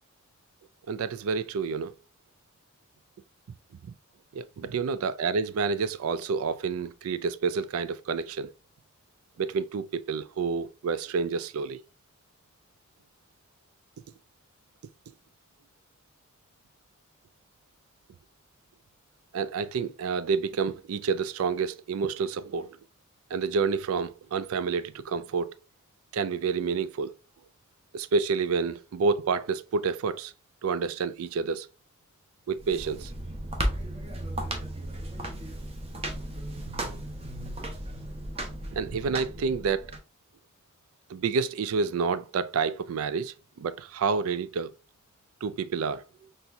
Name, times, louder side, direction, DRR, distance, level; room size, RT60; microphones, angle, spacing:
voice 1, 0.9-1.9 4.3-8.5 9.4-11.8 19.3-22.8 23.3-25.6 26.1-27.1 27.9-30.3 30.6-31.7 32.5-33.1 36.8-37.0 38.7-39.9 41.1-44.7 45.4-46.0, right 5 dB, 75° right, 0.4 m, -29 dB
sound 1, 32.5-40.0, right 1 dB, 30° right, 0.8 m, -35 dB
4.2 x 3.4 x 2.6 m
head